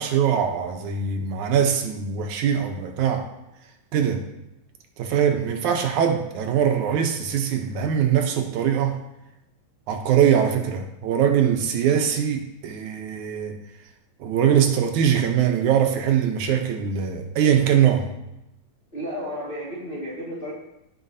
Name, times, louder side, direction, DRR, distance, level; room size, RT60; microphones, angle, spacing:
voice 1, 0.0-3.2 3.9-4.2 5.0-9.0 9.9-13.6 14.2-18.1, right 8 dB, 80° right, 4 dB, 2.2 m, -22 dB
voice 2, 18.9-20.5, equal, 20° left, -7 dB, 1.6 m, -32 dB
15.0 x 5.5 x 2.7 m, 0.90 s
omnidirectional pair, 3.5 m